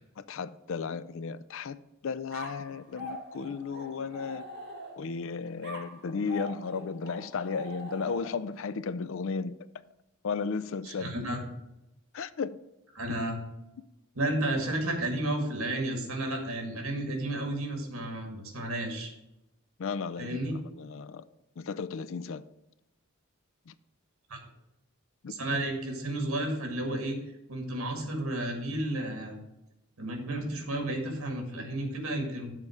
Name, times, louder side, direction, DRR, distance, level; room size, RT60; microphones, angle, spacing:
voice 1, 0.2-1.8 2.0-4.5 5.0-9.6 10.2-11.1 12.1-12.6 19.8-21.2 21.6-22.4 23.7-23.8 25.2-25.3, left 5 dB, 60° left, 0.4 m, -34 dB
sound 1, 2.3-5.2 5.6-8.5, equal, 50° right, 2.1 m, -43 dB
voice 2, 10.8-11.5 13.0-13.4 14.2-19.1 20.2-20.6 24.3-24.4 25.3-27.2 27.5-29.4 30.0-32.5, right 1 dB, 70° right, 2.0 m, -32 dB
7.7 x 4.7 x 7.1 m
head